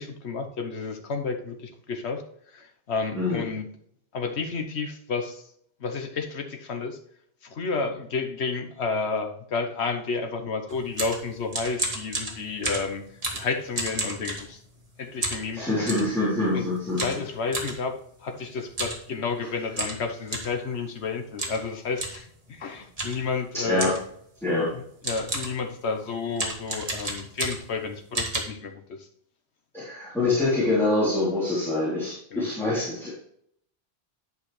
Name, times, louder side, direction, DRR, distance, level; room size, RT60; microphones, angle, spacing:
voice 1, 0.0-3.7 4.1-5.4 5.8-7.0 7.4-13.0 13.3-14.6 15.0-15.9 16.5-16.7 17.0-24.0 24.7-29.1 32.3-32.4, left 4 dB, 80° left, 5 dB, 1.4 m, -31 dB
voice 2, 3.1-3.4 15.5-17.0 23.6-23.9 24.4-24.7 29.7-33.1, left 2 dB, ahead, -10 dB, 3.3 m, -25 dB
sound 1, 10.7-14.9 15.2-16.1 17.0-17.8 18.7-19.0 19.3-19.4 19.7-20.6 21.4-21.7 22.0-22.2 23.0-23.3 23.8-24.1 24.7-24.8 25.0-25.6 26.3-27.8 28.1-28.4, right 1 dB, 35° right, 1.8 m, -31 dB
11.0 x 5.5 x 3.3 m, 0.66 s
omnidirectional pair, 1.1 m